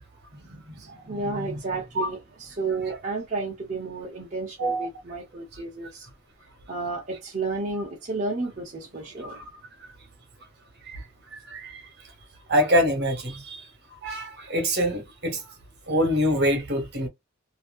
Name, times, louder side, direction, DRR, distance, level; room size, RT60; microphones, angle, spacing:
voice 1, 0.3-6.1 6.4-9.4, right 3 dB, 40° right, 0.9 m, -32 dB
voice 2, 11.3-11.8 12.5-13.6 14.0-15.4 15.9-17.1, equal, 55° right, 1.4 m, -25 dB
3.0 x 2.7 x 2.4 m
head